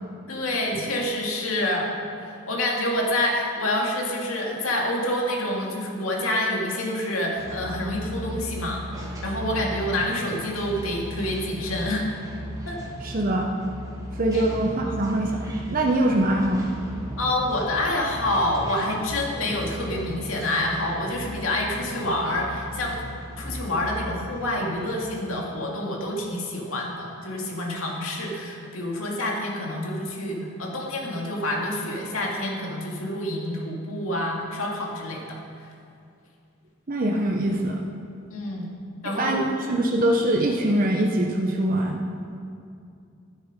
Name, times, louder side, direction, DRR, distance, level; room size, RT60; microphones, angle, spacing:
voice 1, 0.3-1.9 2.2-8.8 9.2-12.1 12.7-12.8 14.3-14.5 14.9-15.0 17.2-23.0 23.4-35.4 38.3-38.7 39.0-39.4, left 1 dB, 80° left, -1 dB, 2.3 m, -27 dB
sound 1, 7.4-24.9, equal, 15° right, 1.8 m, -37 dB
voice 2, 13.0-13.5 14.1-16.8 36.9-37.8 39.0-42.0, right 1 dB, 45° right, 0 dB, 0.9 m, -23 dB
12.0 x 10.0 x 5.2 m, 2.5 s
head